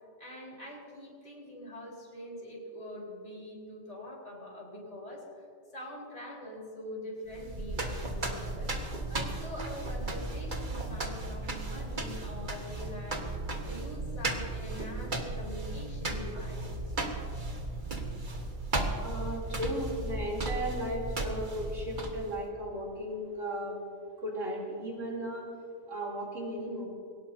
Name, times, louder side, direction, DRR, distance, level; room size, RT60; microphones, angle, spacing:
voice 1, 0.2-5.4 5.7-8.7 9.1-13.2 13.6-16.9, equal, 65° left, -4 dB, 4.7 m, -44 dB
sound 1, 7.3-22.4, right 2 dB, 40° right, 1.6 m, -35 dB
voice 2, 19.0-23.8 24.2-25.5 25.9-26.9, equal, 80° right, -4 dB, 3.8 m, -35 dB
22.5 x 18.0 x 2.8 m, 2.2 s
omnidirectional pair, 1.3 m